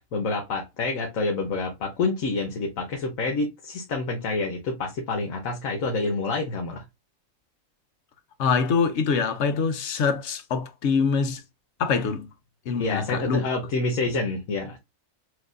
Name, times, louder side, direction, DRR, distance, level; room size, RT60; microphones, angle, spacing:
voice 1, 0.1-6.8 12.8-14.8, left 3 dB, 80° left, 1.3 m, -28 dB
voice 2, 8.4-11.4 11.8-12.3 12.7-13.5, left 5 dB, 65° left, 0.8 m, -24 dB
6.3 x 2.5 x 2.5 m
omnidirectional pair, 1.4 m